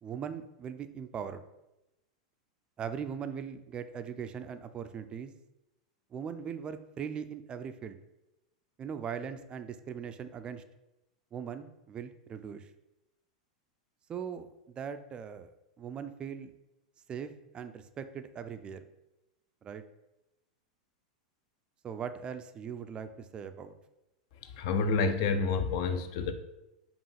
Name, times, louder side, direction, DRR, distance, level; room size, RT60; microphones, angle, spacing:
voice 1, 0.0-1.4 2.8-5.3 6.1-8.0 8.8-10.6 11.3-12.7 14.1-15.5 15.8-16.5 17.1-18.9 19.6-19.8 21.8-23.7, right 7 dB, 25° right, 9 dB, 0.3 m, -40 dB
voice 2, 24.6-26.3, left 4 dB, 50° left, 9 dB, 0.5 m, -28 dB
5.3 x 2.4 x 3.2 m, 0.92 s
figure-of-eight pair, 90°, 4 cm